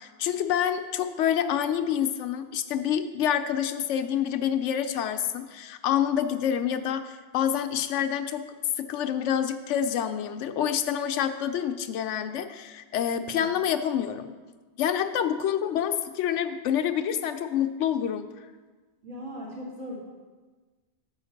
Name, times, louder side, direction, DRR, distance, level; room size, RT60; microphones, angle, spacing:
voice 1, 0.0-8.4 8.8-14.3 14.8-18.3, left 9 dB, 90° left, 8 dB, 0.9 m, -27 dB
voice 2, 19.0-20.0, equal, 80° right, -6 dB, 2.3 m, -38 dB
7.0 x 5.7 x 6.4 m, 1.3 s
omnidirectional pair, 1.2 m